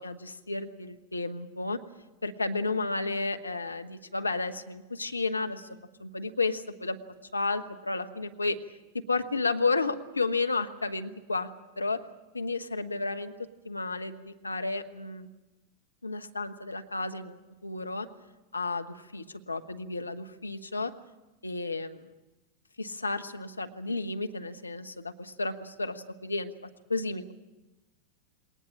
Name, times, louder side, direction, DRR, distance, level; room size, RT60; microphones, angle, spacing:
voice 1, 0.0-1.8 2.2-5.7 6.0-7.0 7.3-8.6 8.9-11.5 11.8-12.0 12.3-13.3 13.6-15.3 16.0-18.1 18.5-20.9 21.4-22.0 22.8-26.5 26.9-27.3, left 3 dB, 80° left, 7 dB, 1.1 m, -32 dB
21.0 x 19.5 x 8.6 m, 1.1 s
figure-of-eight pair, 90°, 0 cm